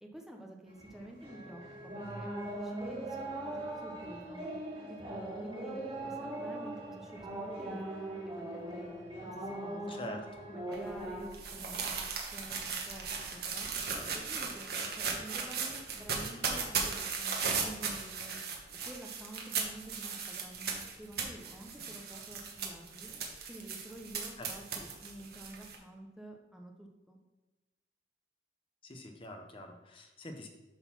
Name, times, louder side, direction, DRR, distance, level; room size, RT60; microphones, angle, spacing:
voice 1, 0.0-2.3 2.6-4.6 4.9-5.1 5.4-8.2 8.5-8.9 9.2-10.0 10.5-13.7 14.1-18.4 18.9-23.1 23.5-27.2, right 1 dB, ahead, 1 dB, 0.7 m, -49 dB
sound 1, 0.7-11.3, right 1 dB, 30° right, 2.8 m, -40 dB
voice 2, 9.9-10.3 24.4-24.5 28.8-30.5, left 1 dB, 30° left, 5 dB, 0.8 m, -45 dB
sound 2, 10.7-25.8, right 5 dB, 55° right, 1.3 m, -37 dB
8.1 x 3.9 x 5.8 m, 1.1 s
head